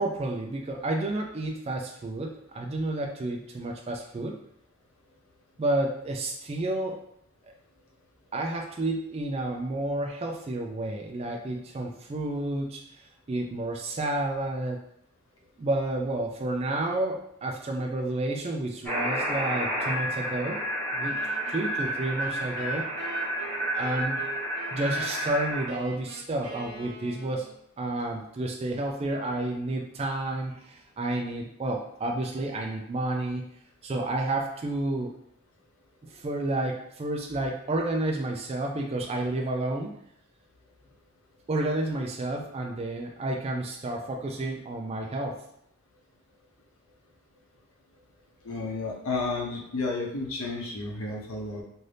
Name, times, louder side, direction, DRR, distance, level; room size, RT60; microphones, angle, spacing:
voice 1, 0.0-4.4 5.6-7.0 8.3-13.0 13.3-14.8 15.6-20.6 20.9-21.1 21.5-22.9 23.7-24.2 24.7-27.5 27.8-33.4 33.8-35.1 36.0-39.9 41.5-45.4, right 2 dB, 30° right, 1 dB, 0.3 m, -30 dB
sound 1, 18.8-25.7, right 1 dB, 5° left, 1.2 m, -30 dB
sound 2, 21.1-27.6, right 2 dB, 85° right, 1.0 m, -44 dB
voice 2, 48.4-51.6, left 3 dB, 85° left, -1 dB, 0.7 m, -32 dB
2.6 x 2.5 x 3.3 m, 0.72 s
head